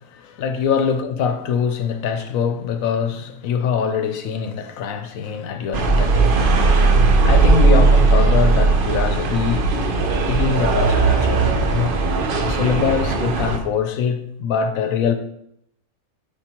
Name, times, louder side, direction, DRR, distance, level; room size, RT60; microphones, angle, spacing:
voice 1, 0.1-6.7 7.2-9.7 10.3-12.0 12.4-15.1, left 7 dB, 70° left, 1.0 m, -23 dB
sound 1, 5.7-13.6, right 3 dB, 55° right, 0.6 m, -17 dB
7.2 x 4.9 x 3.0 m
omnidirectional pair, 1.6 m